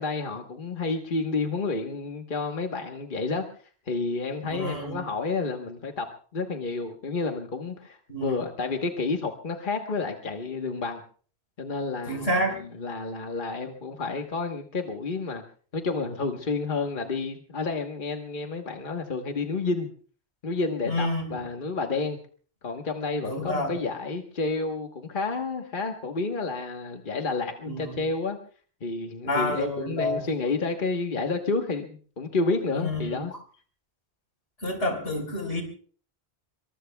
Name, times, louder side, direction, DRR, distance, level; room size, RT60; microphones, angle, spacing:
voice 1, 0.0-3.4 3.9-6.1 6.3-11.0 11.6-15.4 15.7-19.9 20.4-22.2 22.6-28.4 28.8-33.3, left 3 dB, 50° left, 3 dB, 1.4 m, -30 dB
voice 2, 4.4-5.0 8.1-8.3 12.1-12.6 20.9-21.4 23.2-23.8 27.7-28.0 29.3-30.2 32.8-33.2 34.6-35.6, left 1 dB, 85° left, 4 dB, 4.6 m, -29 dB
26.0 x 23.5 x 2.3 m, 0.43 s
omnidirectional pair, 1.1 m